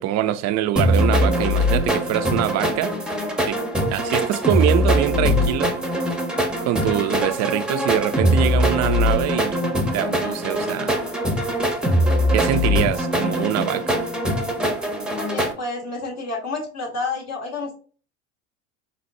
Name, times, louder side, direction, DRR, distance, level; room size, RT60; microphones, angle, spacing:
voice 1, 0.0-2.9 3.5-3.6 3.9-5.7 6.6-11.0 12.3-14.1, right 13 dB, 50° right, 0.5 m, -24 dB
sound 1, 0.8-15.5, equal, ahead, 0.9 m, -22 dB
voice 2, 15.2-17.7, left 3 dB, 45° left, 2.3 m, -29 dB
4.1 x 3.9 x 2.6 m
supercardioid pair, 100°, 34 cm